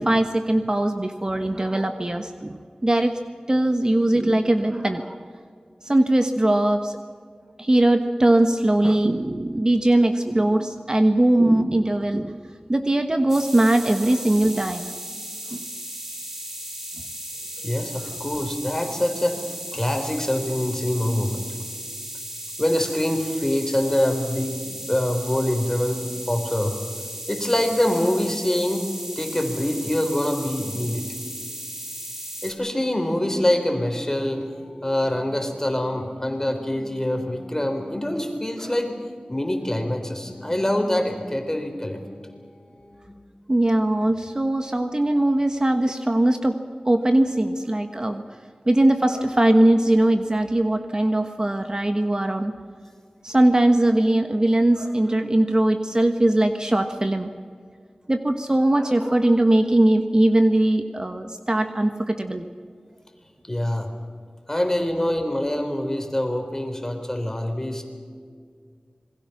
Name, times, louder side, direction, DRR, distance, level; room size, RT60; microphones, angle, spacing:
voice 1, 0.0-2.6 2.8-3.1 3.5-5.2 5.8-7.0 7.6-12.4 12.7-14.9 15.5-15.6 43.5-46.6 46.8-48.2 48.7-52.5 53.2-57.3 58.1-62.5, right 1 dB, 30° right, 6 dB, 1.2 m, -20 dB
sound 1, 13.3-32.5, right 1 dB, 15° right, 3.6 m, -36 dB
voice 2, 17.6-21.4 22.6-26.8 27.3-28.9 29.2-31.1 32.4-34.5 34.8-39.0 39.3-42.0 63.5-63.9 64.5-67.8, left 1 dB, 20° left, 5 dB, 4.0 m, -25 dB
Singing, 33.4-38.8 39.4-43.3, left 1 dB, 60° left, 4.0 m, -47 dB
27.0 x 21.0 x 6.0 m, 2.1 s
wide cardioid pair, 65°, 2 cm